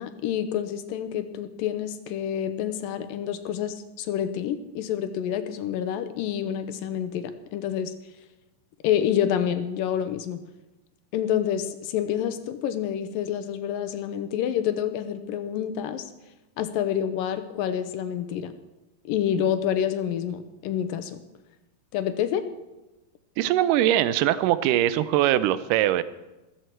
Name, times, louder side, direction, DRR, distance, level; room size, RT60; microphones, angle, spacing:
voice 1, 0.0-7.9 8.8-10.4 11.1-16.1 16.6-18.5 19.1-21.2 21.9-22.4, left 9 dB, 80° left, 10 dB, 2.5 m, -28 dB
voice 2, 23.4-26.0, right 13 dB, 80° right, 14 dB, 2.1 m, -22 dB
14.0 x 14.0 x 4.6 m, 1.0 s
omnidirectional pair, 4.1 m